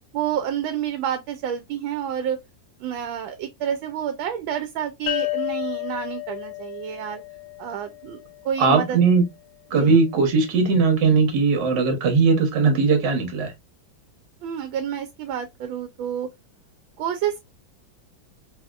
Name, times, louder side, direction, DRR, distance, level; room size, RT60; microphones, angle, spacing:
voice 1, 0.1-2.4 2.8-7.2 7.6-9.0 9.8-9.9 14.4-16.3 17.0-17.4, right 9 dB, 85° right, 1.3 m, -29 dB
sound 1, 5.1-8.5, left 19 dB, 85° left, 1.3 m, -31 dB
voice 2, 8.6-9.3 9.7-13.5, right 4 dB, 65° right, 1.6 m, -19 dB
3.8 x 2.7 x 2.3 m
omnidirectional pair, 2.1 m